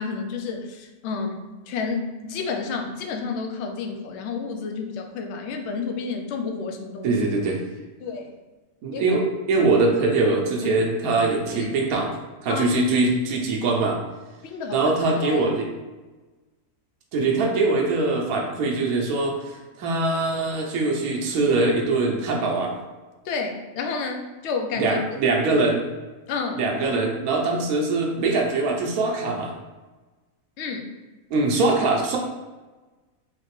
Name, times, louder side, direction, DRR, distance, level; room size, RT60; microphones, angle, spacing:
voice 1, 0.0-7.2 8.0-8.4 8.9-9.2 9.6-9.7 10.6-10.7 11.5-11.8 12.5-12.8 14.4-14.8 15.2-15.4 23.2-25.0 26.3-26.6 30.6-30.9, left 4 dB, 65° left, 4 dB, 0.8 m, -30 dB
voice 2, 7.0-7.6 8.8-9.2 9.5-12.1 12.4-14.0 14.7-15.7 17.1-22.8 24.7-25.8 26.6-29.5 31.3-32.2, right 3 dB, 80° right, 0 dB, 1.2 m, -22 dB
4.0 x 3.2 x 3.2 m, 1.2 s
omnidirectional pair, 1.5 m